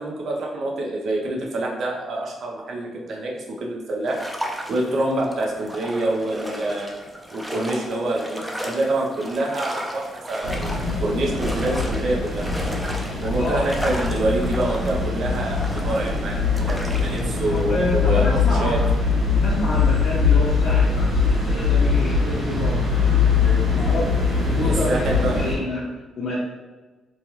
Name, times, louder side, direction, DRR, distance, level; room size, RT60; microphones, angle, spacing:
voice 1, 0.0-3.3 3.6-4.2 4.7-6.9 7.3-12.4 13.2-18.8 24.6-25.4, right 2 dB, 60° right, -2 dB, 0.6 m, -26 dB
sound 1, 4.0-17.6, equal, 5° right, 0.5 m, -34 dB
sound 2, 10.4-25.5, left 4 dB, 45° right, 1.4 m, -22 dB
voice 2, 13.4-13.7 17.5-18.9 19.4-23.1 23.4-25.8 26.1-26.4, left 1 dB, 65° left, -8 dB, 0.7 m, -28 dB
3.1 x 2.3 x 2.9 m, 1.2 s
cardioid pair, 90°, 0 cm